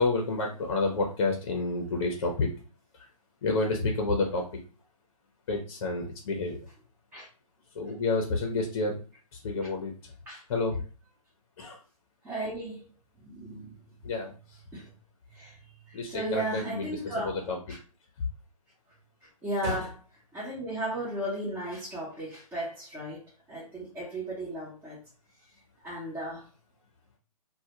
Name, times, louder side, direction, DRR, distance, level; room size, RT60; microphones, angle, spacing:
voice 1, 0.0-2.5 2.9-3.1 3.4-4.5 5.5-6.7 7.7-9.0 9.3-10.1 10.5-10.8 11.6-11.8 14.0-14.6 15.9-17.6 18.2-18.3 19.6-19.9, left 3 dB, 45° left, 2 dB, 0.6 m, -29 dB
voice 2, 12.2-12.8 13.2-13.8 14.7-14.9 15.3-17.8 19.2-19.9 20.3-25.0 25.8-26.4, right 1 dB, 10° right, -7 dB, 0.6 m, -35 dB
2.2 x 2.1 x 2.8 m, 0.36 s
figure-of-eight pair, 135°, 20 cm